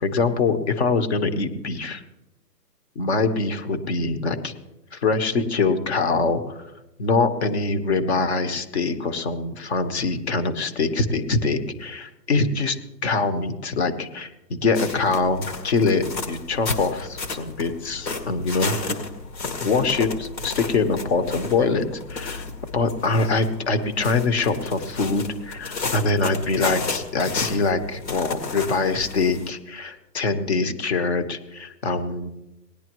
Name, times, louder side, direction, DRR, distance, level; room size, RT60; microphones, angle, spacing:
voice 1, 0.0-2.0 2.9-4.5 4.9-6.6 7.0-12.8 13.0-19.0 19.6-22.5 22.7-32.3, left 3 dB, 40° left, 9 dB, 1.3 m, -24 dB
Walking snow, 14.7-29.5, left 4 dB, 85° left, 2.4 m, -33 dB
19.0 x 10.5 x 3.1 m, 0.92 s
hypercardioid pair, 165°, 50 cm